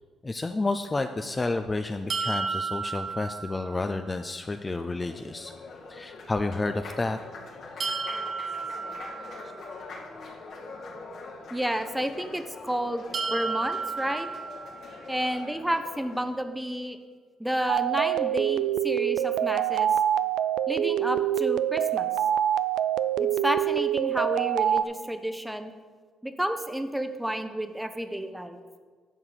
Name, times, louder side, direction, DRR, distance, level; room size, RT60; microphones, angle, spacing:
voice 1, 0.2-5.5 5.9-7.2, left 2 dB, 25° left, 7 dB, 0.4 m, -30 dB
sound 1, 2.1-4.1 7.8-9.9 13.1-15.2, right 4 dB, 45° right, 1.0 m, -33 dB
Applause, 4.6-16.4, left 3 dB, 75° left, 2.3 m, -44 dB
voice 2, 11.5-14.3 15.1-17.0 17.4-19.9 20.7-22.1 23.2-25.7 26.2-28.6, equal, 5° right, 8 dB, 0.8 m, -30 dB
sound 2, 17.7-24.8, right 10 dB, 85° right, 0.3 m, -25 dB
11.0 x 4.6 x 6.7 m, 1.5 s
cardioid pair, 90°, 0 cm